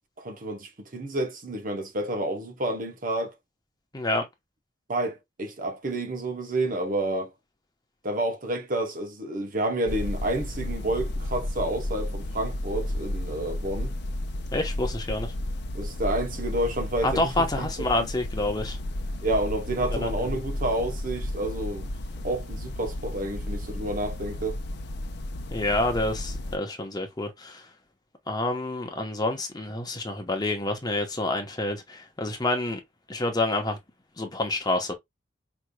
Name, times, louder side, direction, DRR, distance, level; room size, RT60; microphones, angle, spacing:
voice 1, 0.2-3.3 4.9-7.3 8.0-13.9 15.7-17.3 17.6-18.1 19.2-21.9 22.2-24.6, right 1 dB, 45° right, 0.8 m, -29 dB
voice 2, 3.9-4.2 14.5-15.3 17.0-18.8 19.9-20.1 25.5-27.7 28.3-32.8 33.1-33.8 34.2-34.9, left 2 dB, 20° left, 0.9 m, -28 dB
sound 1, 9.9-26.6, left 1 dB, 60° left, 0.8 m, -33 dB
5.1 x 3.1 x 2.2 m
head